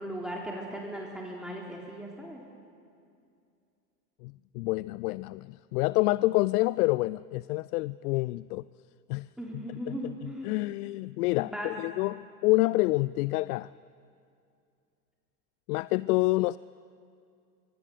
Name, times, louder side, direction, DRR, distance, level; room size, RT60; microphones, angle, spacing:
voice 1, 0.0-2.4 9.4-10.6 11.4-11.7, equal, ahead, -2 dB, 3.4 m, -38 dB
voice 2, 4.2-8.6 9.1-9.3 9.9-13.7 15.7-16.6, left 20 dB, 65° left, 19 dB, 0.5 m, -28 dB
24.0 x 23.5 x 6.7 m, 2.4 s
hypercardioid pair, 90°, 49 cm